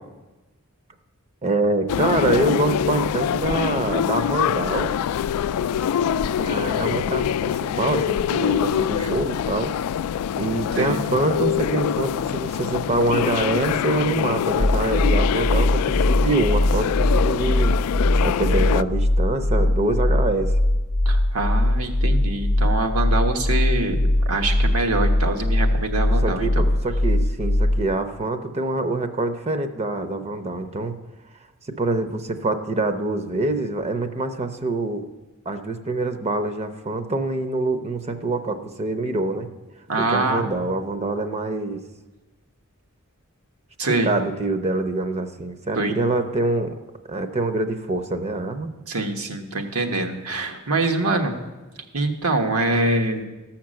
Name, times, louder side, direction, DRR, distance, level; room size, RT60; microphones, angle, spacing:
voice 1, 1.4-4.9 6.4-9.7 10.4-17.7 18.2-20.5 26.2-30.9 31.8-35.1 35.5-39.5 40.0-41.8 43.9-46.7 47.1-48.7, right 2 dB, 30° right, 8 dB, 0.6 m, -25 dB
sound 1, 1.9-18.8, left 9 dB, 90° left, 0.3 m, -24 dB
sound 2, 14.6-27.9, left 1 dB, 40° left, 0.6 m, -21 dB
voice 2, 21.0-26.5 39.9-40.5 43.8-44.1 45.7-46.0 48.9-51.4 51.9-53.2, right 2 dB, 80° right, 5 dB, 1.3 m, -24 dB
13.5 x 5.8 x 7.6 m, 1.1 s
head